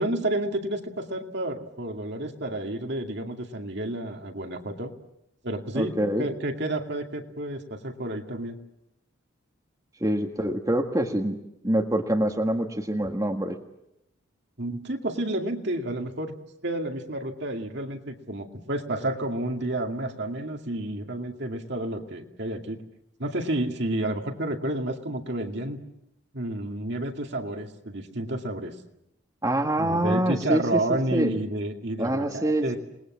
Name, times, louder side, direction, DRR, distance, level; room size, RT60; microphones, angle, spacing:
voice 1, 0.0-4.9 5.4-8.6 14.6-16.3 16.6-22.8 23.2-25.8 26.3-28.8 29.8-32.8, right 1 dB, 55° right, 3 dB, 2.3 m, -30 dB
voice 2, 5.7-6.3 10.0-11.4 11.6-13.6 29.4-31.3 32.0-32.8, right 1 dB, 15° right, 3 dB, 1.7 m, -25 dB
28.0 x 20.5 x 7.4 m, 0.83 s
head